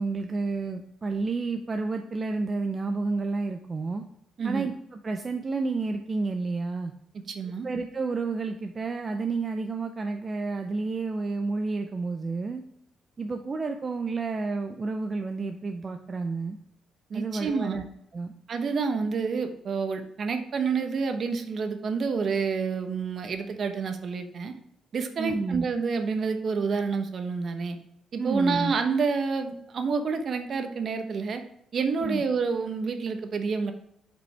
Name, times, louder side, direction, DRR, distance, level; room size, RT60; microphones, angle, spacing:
voice 1, 0.0-4.0 4.4-6.9 7.6-12.6 13.2-16.6 17.1-17.8 18.1-18.3 25.2-25.7 28.2-28.7 32.0-32.2, right 3 dB, 35° right, 5 dB, 0.6 m, -30 dB
voice 2, 4.4-4.7 7.3-7.7 17.1-17.8 18.5-24.5 24.9-27.8 28.1-31.4 31.7-33.7, right 5 dB, 55° right, 6 dB, 1.0 m, -28 dB
7.3 x 5.2 x 3.4 m, 0.75 s
cardioid pair, 90°, 0 cm